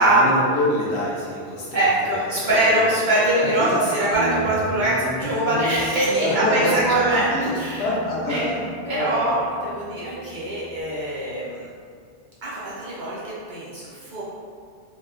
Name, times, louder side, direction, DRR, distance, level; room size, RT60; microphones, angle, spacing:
voice 1, 0.0-3.0 3.4-4.0 6.2-9.4, left 1 dB, 70° left, -6 dB, 0.9 m, -27 dB
voice 2, 1.7-7.3 7.6-7.8 8.3-8.4 8.9-11.7 12.4-14.2, right 1 dB, 55° right, -8 dB, 0.6 m, -22 dB
Guitar, 4.1-10.8, right 1 dB, 25° right, 0.9 m, -34 dB
2.8 x 2.2 x 2.4 m, 2.1 s
omnidirectional pair, 1.2 m